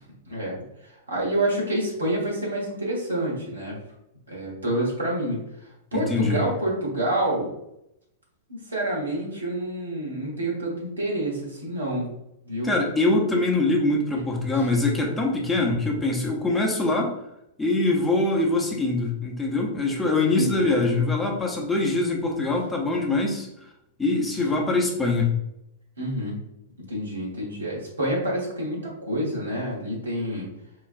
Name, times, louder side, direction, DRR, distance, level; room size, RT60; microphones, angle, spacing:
voice 1, 0.3-3.8 4.3-5.4 5.9-7.5 8.5-12.1 12.4-12.7 14.5-14.6 20.3-20.8 26.0-26.4 26.9-30.5, right 1 dB, 80° right, -4 dB, 1.3 m, -28 dB
voice 2, 5.9-6.5 12.6-17.1 17.6-23.5 24.0-25.3, left 2 dB, 10° left, -1 dB, 0.8 m, -23 dB
4.5 x 2.3 x 2.5 m, 0.82 s
figure-of-eight pair, 95°, 0 cm